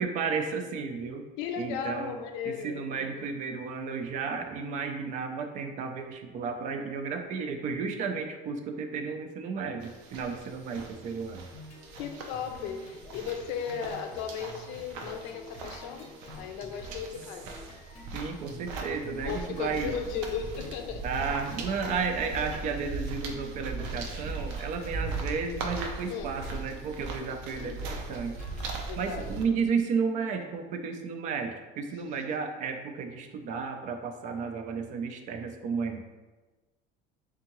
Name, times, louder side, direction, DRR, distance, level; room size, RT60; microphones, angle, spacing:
voice 1, 0.0-1.3 1.6-2.1 2.4-11.5 18.1-19.9 21.0-28.5 29.0-36.0, right 5 dB, 40° right, 5 dB, 0.4 m, -33 dB
voice 2, 1.4-3.1 12.0-16.1 16.3-17.6 19.2-21.0 26.1-26.4 27.6-28.0 28.9-29.2, left 7 dB, 75° left, 6 dB, 0.5 m, -36 dB
sound 1, 9.8-29.4, right 3 dB, 90° right, 0.6 m, -39 dB
sound 2, 11.5-28.7, left 3 dB, 35° left, 0.7 m, -49 dB
3.6 x 3.5 x 3.0 m, 1.2 s
cardioid pair, 170°, 19 cm